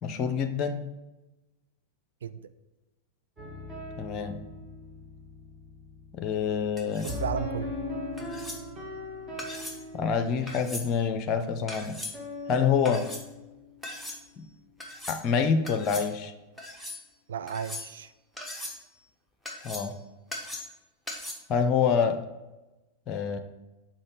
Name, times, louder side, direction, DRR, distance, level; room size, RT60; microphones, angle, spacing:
voice 1, 0.0-0.9 4.0-4.4 6.1-7.1 9.9-12.0 12.5-13.0 14.4-14.5 15.1-16.3 19.6-20.0 21.5-22.2 23.1-23.4, left 6 dB, 35° left, 9 dB, 0.6 m, -26 dB
sound 1, 3.4-14.2, left 2 dB, 20° right, 1.6 m, -40 dB
sound 2, 6.8-7.2 8.2-8.6 9.4-9.8 10.5-10.9 11.7-12.1 12.8-13.2 13.8-14.2 14.8-15.2 15.7-16.1 16.6-17.0 17.5-18.0 18.4-18.8 19.5-20.0 20.3-20.8 21.1-21.3, left 1 dB, ahead, 1.1 m, -39 dB
voice 2, 6.9-7.8 12.9-13.0 17.3-18.1, right 7 dB, 65° right, 12 dB, 0.3 m, -34 dB
6.4 x 3.9 x 4.8 m, 1.0 s
figure-of-eight pair, 90°, 0 cm